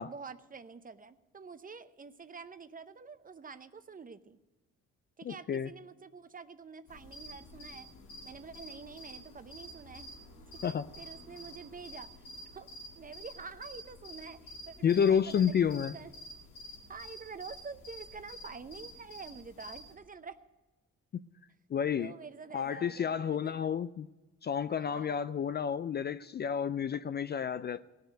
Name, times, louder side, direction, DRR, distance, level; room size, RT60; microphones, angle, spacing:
voice 1, 0.0-4.4 5.2-7.9 8.2-10.1 10.5-12.3 12.5-12.7 13.0-16.1 16.9-20.4 22.0-23.6 24.7-25.3, right 5 dB, 30° right, 0.7 m, -47 dB
voice 2, 5.2-5.7 10.6-10.9 14.8-15.9 21.7-22.1 22.5-24.1 24.4-27.9, left 8 dB, 35° left, 0.4 m, -30 dB
sound 1, 6.9-19.9, equal, 85° left, 2.3 m, -49 dB
17.0 x 6.6 x 9.1 m
cardioid pair, 90°, 30 cm